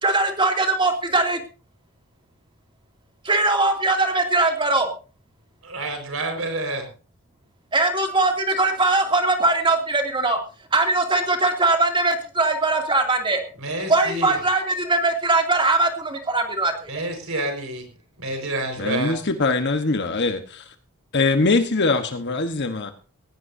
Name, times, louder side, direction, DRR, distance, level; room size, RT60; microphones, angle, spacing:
voice 1, 0.0-1.4 3.2-4.9 7.7-10.4 10.7-13.4 13.9-17.0, right 2 dB, 20° right, 4 dB, 2.6 m, -21 dB
voice 2, 5.6-6.9 13.6-14.3 16.9-17.9 18.2-19.2, right 2 dB, 65° right, 5 dB, 5.0 m, -28 dB
voice 3, 18.8-20.7 21.1-22.9, left 3 dB, 50° left, 7 dB, 1.2 m, -22 dB
18.5 x 16.5 x 2.7 m, 0.35 s
head